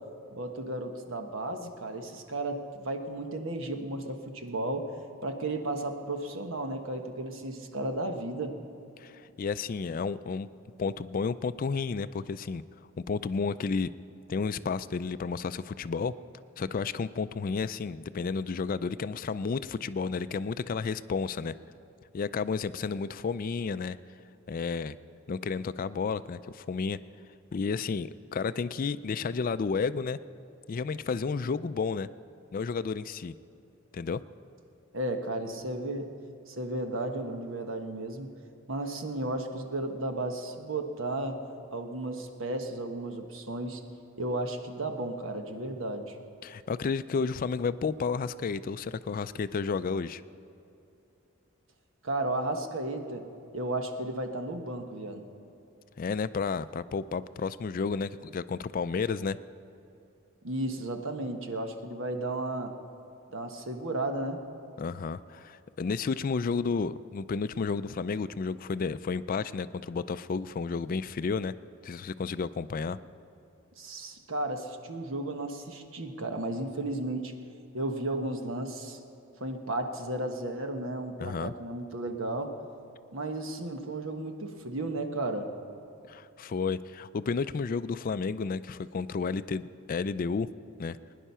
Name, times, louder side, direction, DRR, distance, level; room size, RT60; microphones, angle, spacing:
voice 1, 0.3-4.9 5.2-8.6 34.9-36.1 36.5-38.3 38.7-41.4 41.7-43.8 44.2-46.2 52.0-53.3 53.5-55.3 60.4-62.7 63.3-64.4 73.8-77.3 77.7-79.0 79.4-82.6 83.1-85.5, right 2 dB, 70° right, 5 dB, 1.3 m, -34 dB
voice 2, 9.0-10.5 10.8-12.6 13.0-13.9 14.3-16.1 16.6-21.5 22.1-24.0 24.5-24.9 25.3-27.0 27.5-30.2 30.7-32.1 32.5-33.3 33.9-34.2 46.4-50.2 56.0-59.4 64.8-71.5 71.8-73.0 81.2-81.5 86.1-90.5 90.8-91.0, left 5 dB, 40° left, 14 dB, 0.3 m, -31 dB
21.5 x 10.0 x 5.6 m, 2.8 s
head